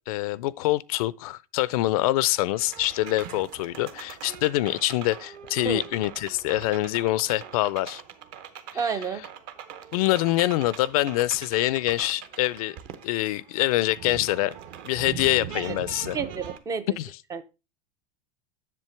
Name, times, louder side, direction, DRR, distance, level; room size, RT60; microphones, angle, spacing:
voice 1, 0.1-8.0 9.9-12.8 13.0-14.5 14.8-16.2 17.0-17.1, left 17 dB, 65° left, 0.4 m, -25 dB
sound 1, 2.5-16.6, right 9 dB, 45° right, 0.8 m, -42 dB
voice 2, 8.7-9.3 16.1-16.9 17.3-17.4, right 5 dB, 15° right, 0.4 m, -29 dB
7.6 x 7.1 x 3.2 m
supercardioid pair, 150°, 20 cm